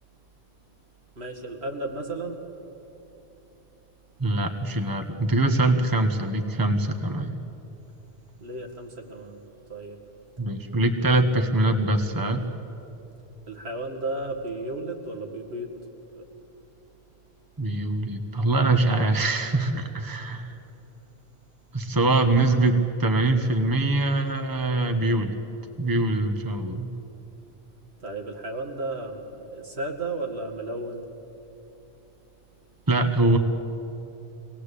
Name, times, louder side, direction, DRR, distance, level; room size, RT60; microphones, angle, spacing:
voice 1, 1.2-2.4 8.4-9.4 9.7-10.0 11.2-11.3 13.5-15.7 16.1-16.2 28.0-31.1, right 2 dB, 75° right, 2 dB, 2.3 m, -34 dB
voice 2, 4.2-7.3 10.4-12.4 17.6-20.5 21.7-25.4 25.8-26.9 32.9-33.4, right 2 dB, 20° right, 6 dB, 1.2 m, -23 dB
24.5 x 18.5 x 8.3 m, 3.0 s
omnidirectional pair, 1.1 m